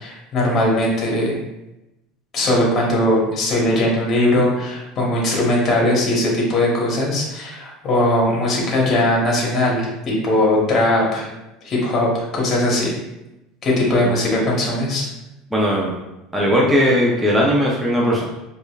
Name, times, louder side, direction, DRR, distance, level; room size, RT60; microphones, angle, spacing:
voice 1, 0.0-1.4 2.3-11.3 11.6-13.0 13.6-15.0, left 1 dB, 30° left, -3 dB, 1.0 m, -19 dB
voice 2, 15.5-16.0 16.3-18.2, equal, 5° right, -4 dB, 0.6 m, -18 dB
4.8 x 2.5 x 2.3 m, 0.93 s
supercardioid pair, 135°, 0 cm